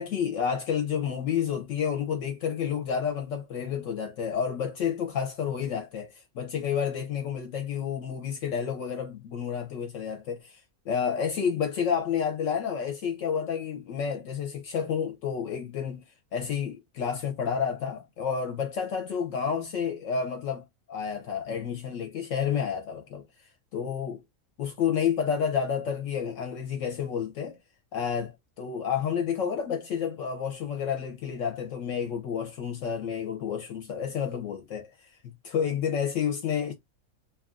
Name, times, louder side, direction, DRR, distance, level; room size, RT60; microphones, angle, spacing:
voice 1, 0.0-16.0 16.3-23.2 23.7-24.2 24.6-27.6 27.9-35.1 35.4-36.7, left 7 dB, 70° left, 0.9 m, -30 dB
2.8 x 2.3 x 2.4 m
omnidirectional pair, 1.5 m